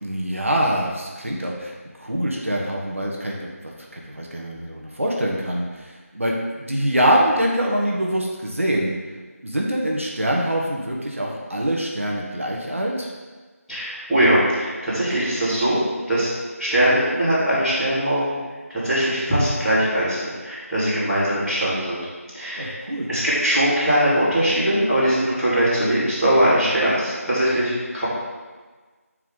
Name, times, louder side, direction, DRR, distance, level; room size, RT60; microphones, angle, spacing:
voice 1, 0.0-1.7 2.0-9.0 9.4-13.1 22.6-23.1, right 1 dB, 55° right, -1 dB, 1.2 m, -24 dB
voice 2, 13.7-15.8 16.1-16.3 16.6-18.4 18.7-22.0 22.3-22.8 23.1-28.0, right 1 dB, ahead, -24 dB, 1.4 m, -21 dB
8.2 x 4.6 x 3.9 m, 1.4 s
figure-of-eight pair, 170°, 8 cm